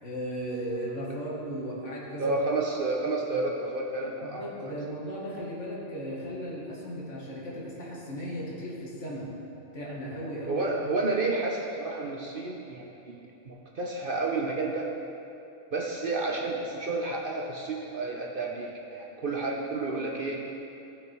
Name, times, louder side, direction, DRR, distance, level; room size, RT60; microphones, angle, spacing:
voice 1, 0.0-2.4 4.2-9.3 9.7-10.7, equal, 65° left, -5 dB, 2.2 m, -36 dB
voice 2, 2.2-4.7 10.5-14.9 15.7-20.4, right 3 dB, 45° right, -2 dB, 0.9 m, -31 dB
15.5 x 5.9 x 4.5 m, 2.7 s
omnidirectional pair, 1.3 m